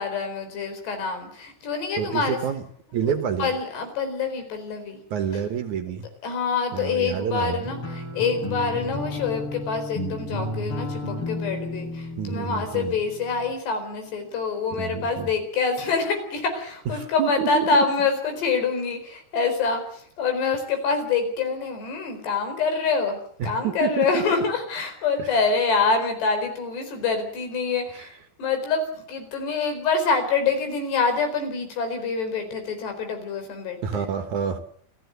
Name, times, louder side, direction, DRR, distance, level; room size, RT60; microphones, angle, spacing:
voice 1, 0.0-2.4 3.0-5.0 6.2-34.1, left 4 dB, 85° left, 7 dB, 6.5 m, -26 dB
voice 2, 2.0-2.6 2.9-3.5 5.1-6.1 6.7-7.7 12.2-13.0 14.7-15.3 17.0-18.0 23.4-24.4 25.2-25.3 33.8-34.6, right 7 dB, 60° right, 8 dB, 2.3 m, -28 dB
sound 1, 7.6-13.5, left 1 dB, 35° left, 4.2 m, -33 dB
27.5 x 15.0 x 8.1 m, 0.62 s
omnidirectional pair, 4.7 m